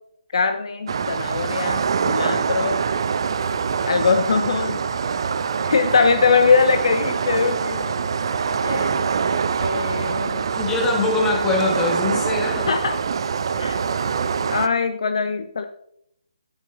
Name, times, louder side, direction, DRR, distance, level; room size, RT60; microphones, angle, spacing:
voice 1, 0.3-2.8 3.9-4.8 5.6-8.0 8.5-9.0 9.6-10.5 12.7-13.0 13.6-13.8 14.5-15.7, left 5 dB, 50° left, 8 dB, 0.6 m, -21 dB
sound 1, 0.9-14.7, right 6 dB, 45° right, 0.5 m, -24 dB
voice 2, 10.6-12.7, left 3 dB, 10° left, -1 dB, 1.7 m, -22 dB
12.5 x 7.3 x 2.6 m, 0.74 s
figure-of-eight pair, 145°, 4 cm